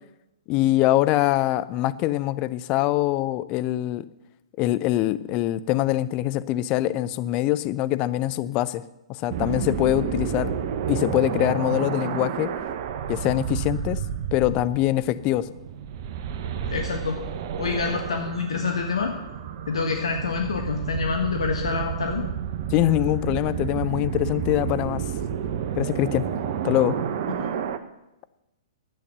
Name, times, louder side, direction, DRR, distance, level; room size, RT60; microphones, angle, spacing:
voice 1, 0.5-4.0 4.6-8.8 9.1-10.5 10.9-12.5 13.1-14.0 14.3-15.5 22.7-25.0 25.8-26.2 26.6-27.0, left 15 dB, 30° left, 14 dB, 0.5 m, -23 dB
sound 1, 9.3-27.8, right 8 dB, 45° right, 1.0 m, -30 dB
voice 2, 16.6-17.2 17.6-19.1 19.7-22.3 27.4-27.5, left 5 dB, 65° left, 3 dB, 1.4 m, -27 dB
12.5 x 8.4 x 6.8 m, 0.92 s
figure-of-eight pair, 115°, 3 cm